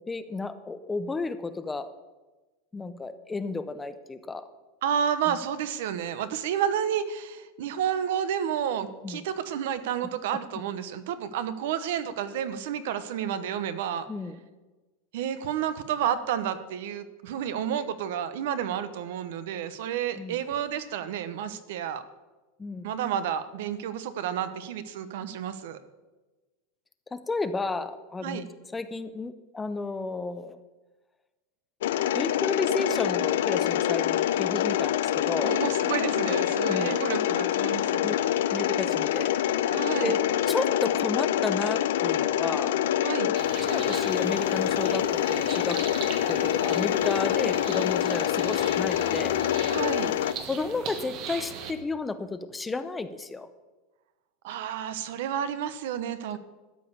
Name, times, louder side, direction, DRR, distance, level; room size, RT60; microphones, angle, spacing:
voice 1, 0.1-1.9 2.7-4.5 5.3-5.4 9.0-9.2 14.1-14.3 20.2-20.4 22.6-22.9 27.1-28.5 28.7-30.6 32.1-35.6 36.7-37.0 38.0-39.4 40.0-40.2 40.5-42.8 43.6-46.0 46.3-49.4 50.5-53.5, left 3 dB, 10° left, 11 dB, 0.6 m, -32 dB
voice 2, 4.8-14.1 15.1-22.0 22.8-25.8 28.2-28.5 35.4-38.1 39.7-40.2 43.0-43.3 49.7-50.1 54.4-56.4, right 9 dB, 70° right, 12 dB, 0.9 m, -30 dB
Mechanisms, 31.8-50.3, left 11 dB, 85° left, 0.6 m, -26 dB
sound 1, 43.3-51.7, right 7 dB, 40° right, 1.3 m, -40 dB
13.0 x 5.4 x 8.3 m, 1.2 s
supercardioid pair, 160°, 0 cm